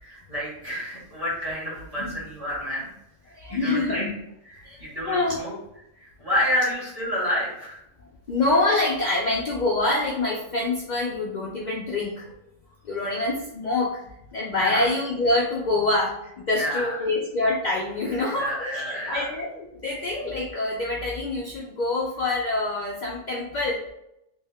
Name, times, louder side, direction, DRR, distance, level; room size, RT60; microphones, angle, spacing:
voice 1, 0.0-2.9 3.3-4.1 4.4-5.6 6.0-7.8 14.6-14.8 16.5-16.9 18.3-19.3, equal, 25° right, -7 dB, 1.6 m, -29 dB
voice 2, 3.4-4.2 4.6-4.8 5.1-5.4 8.3-12.3 12.8-16.1 16.5-23.8, left 2 dB, 70° left, -3 dB, 0.4 m, -26 dB
3.3 x 2.2 x 3.5 m, 0.81 s
omnidirectional pair, 1.4 m